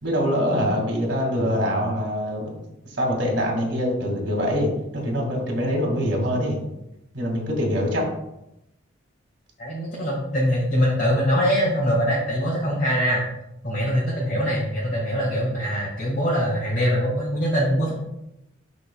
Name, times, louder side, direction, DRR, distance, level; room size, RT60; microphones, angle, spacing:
voice 1, 0.0-2.5 3.0-6.6 7.1-8.0, equal, 65° right, 0 dB, 2.1 m, -24 dB
voice 2, 9.6-13.2 13.6-17.9, equal, 45° left, -7 dB, 1.9 m, -23 dB
11.5 x 4.2 x 2.3 m, 0.86 s
head